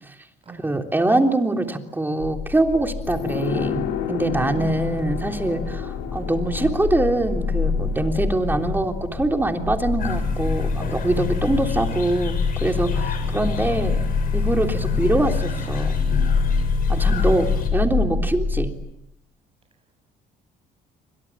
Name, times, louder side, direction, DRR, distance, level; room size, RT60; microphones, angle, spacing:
voice 1, 0.6-14.0 14.3-16.0 16.9-18.7, right 2 dB, 10° right, 4 dB, 3.4 m, -23 dB
sound 1, 2.2-18.7, left 5 dB, 40° left, 5.4 m, -26 dB
sound 2, 3.0-12.3 12.6-12.7, left 8 dB, 85° left, 5.3 m, -34 dB
voice 2, 4.6-5.0 13.2-13.6, right 4 dB, 35° right, 5 dB, 7.8 m, -38 dB
sound 3, 10.0-17.7, left 5 dB, 55° left, 7.2 m, -30 dB
29.0 x 25.0 x 7.5 m, 0.82 s
cardioid pair, 110°, 17 cm